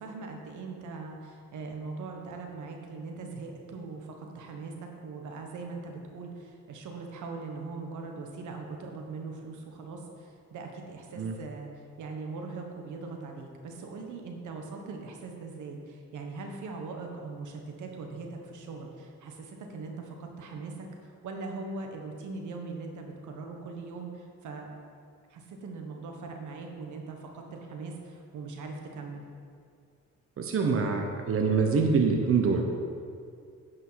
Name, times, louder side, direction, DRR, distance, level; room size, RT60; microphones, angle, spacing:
voice 1, 0.0-24.7 25.3-29.2, right 3 dB, 75° right, 2 dB, 1.3 m, -41 dB
voice 2, 30.4-32.6, right 5 dB, 45° right, 2 dB, 1.0 m, -25 dB
9.5 x 5.5 x 5.7 m, 2.3 s
cardioid pair, 90°, 30 cm